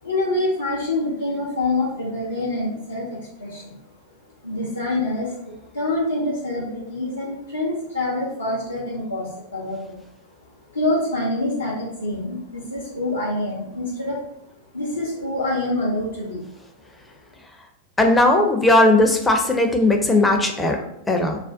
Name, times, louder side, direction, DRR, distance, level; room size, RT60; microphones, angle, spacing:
voice 1, 0.0-3.8 4.4-10.0 10.7-14.2 14.7-16.4, left 2 dB, 80° left, -7 dB, 0.5 m, -26 dB
voice 2, 18.0-21.4, left 2 dB, 10° left, 3 dB, 0.4 m, -18 dB
2.4 x 2.1 x 3.3 m, 0.80 s
figure-of-eight pair, 90°, 0 cm